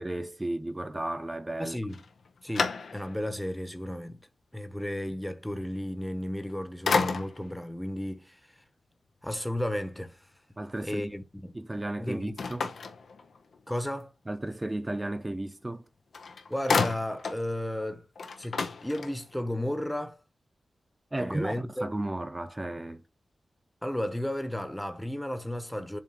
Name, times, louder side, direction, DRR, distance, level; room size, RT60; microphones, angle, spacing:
voice 1, 0.0-1.8 10.6-11.1 11.5-12.7 14.3-15.8 21.1-23.0, right 1 dB, 20° right, 0.8 m, -34 dB
voice 2, 1.6-2.0 2.4-4.2 4.5-8.5 9.2-10.3 10.8-11.5 12.0-12.5 13.7-14.1 16.5-18.1 18.4-20.2 21.2-21.9 23.8-26.0, left 1 dB, 5° left, 0.9 m, -33 dB
sound 1, 1.9-3.3 3.9-4.0 6.2-6.5 6.8-7.6 12.4-13.6 15.7-15.8 16.1-17.5 17.8-17.9 18.1-19.4, left 4 dB, 85° left, 0.8 m, -31 dB
7.4 x 2.7 x 5.5 m
wide cardioid pair, 85°, 0 cm